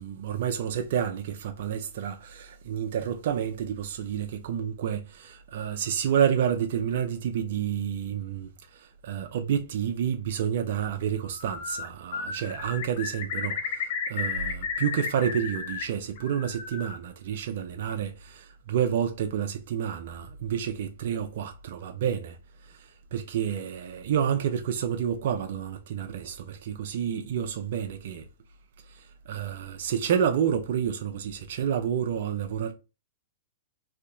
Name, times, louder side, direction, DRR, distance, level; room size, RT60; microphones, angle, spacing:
voice 1, 0.0-22.4 22.6-28.3 28.9-32.7, right 8 dB, 65° right, 0.5 m, -29 dB
Bird, 11.3-11.9 12.1-15.8 16.2-17.0, left 6 dB, 55° left, 0.9 m, -33 dB
3.3 x 2.8 x 2.5 m
hypercardioid pair, 130°, 0 cm